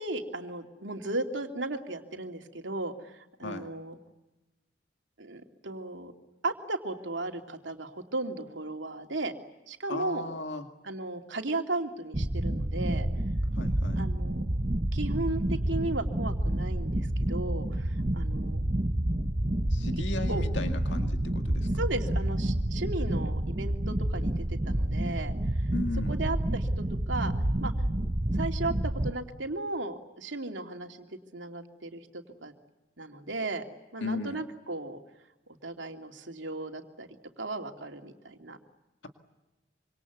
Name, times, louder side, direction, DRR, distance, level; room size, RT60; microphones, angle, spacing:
voice 1, 0.0-4.0 5.2-6.1 6.4-9.3 9.7-10.2 10.8-13.1 14.0-14.4 14.9-18.6 20.3-20.4 21.8-25.7 26.1-27.3 27.6-27.7 28.3-32.5 33.0-33.6 33.9-35.0 35.6-37.1 37.4-38.6, right 2 dB, 85° right, 4 dB, 2.8 m, -35 dB
voice 2, 9.9-10.6 13.5-14.0 19.7-21.7 25.7-26.2 34.0-34.4, left 3 dB, 75° left, 6 dB, 2.0 m, -36 dB
sound 1, 12.1-29.1, right 1 dB, 30° right, 1.0 m, -29 dB
26.5 x 26.0 x 8.1 m, 1.0 s
head